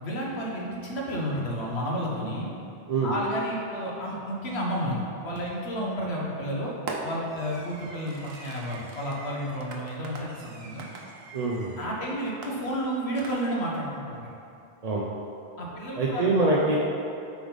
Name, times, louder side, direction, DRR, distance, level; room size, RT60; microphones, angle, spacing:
voice 1, 0.0-2.5 3.0-6.7 7.0-10.8 11.8-14.2 15.6-16.3 16.6-16.7, equal, 85° left, -3 dB, 1.5 m, -31 dB
Fireworks, 5.3-5.8 6.9-11.9 12.4-13.8, right 3 dB, 75° right, 1.0 m, -41 dB
voice 2, 11.3-11.7 14.8-15.0 16.0-16.8, right 3 dB, 45° right, -4 dB, 0.7 m, -24 dB
8.4 x 5.0 x 4.0 m, 2.6 s
omnidirectional pair, 1.1 m